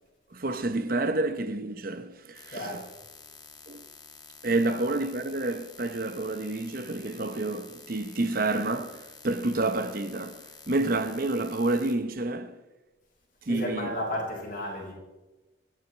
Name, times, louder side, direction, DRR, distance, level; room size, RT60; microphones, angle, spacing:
voice 1, 0.3-2.8 3.7-3.8 4.4-12.6 13.4-13.9, right 2 dB, 50° right, 0.8 m, -29 dB
sound 1, 2.3-11.9, left 5 dB, 20° left, 1.5 m, -50 dB
voice 2, 2.5-2.9 4.6-4.8 10.7-10.9 13.5-14.9, left 1 dB, 45° left, 5.5 m, -34 dB
28.0 x 9.3 x 4.4 m
head